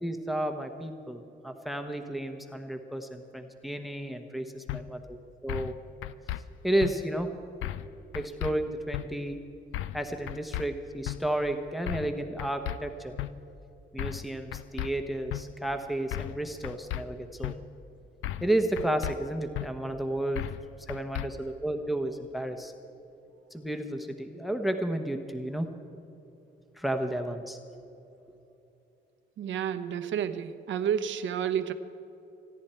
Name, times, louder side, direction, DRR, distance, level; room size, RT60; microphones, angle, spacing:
voice 1, 0.0-5.2 5.4-5.7 6.6-7.3 8.1-9.4 9.9-13.1 13.9-17.5 18.4-20.5 20.9-22.7 23.5-25.7 26.8-27.8, right 1 dB, ahead, 6 dB, 1.1 m, -32 dB
sound 1, 4.7-4.8 5.5-5.7 6.0-6.4 6.8-6.9 7.6-7.9 8.1-8.5 8.9-9.1 9.7-10.0 10.3-10.7 11.1-11.2 11.9-12.1 12.4-12.8 13.2-13.3 14.0-14.3 14.5-14.9 15.3-15.4 16.1-16.4 16.6-17.0 17.4-17.6 18.2-18.5 18.8-19.2 19.6-19.7 20.4-20.6 20.9-21.3, left 14 dB, 85° left, 0.5 m, -34 dB
voice 2, 29.4-31.7, right 9 dB, 70° right, 10 dB, 1.0 m, -30 dB
29.0 x 10.5 x 4.5 m, 3.0 s
cardioid pair, 90°, 20 cm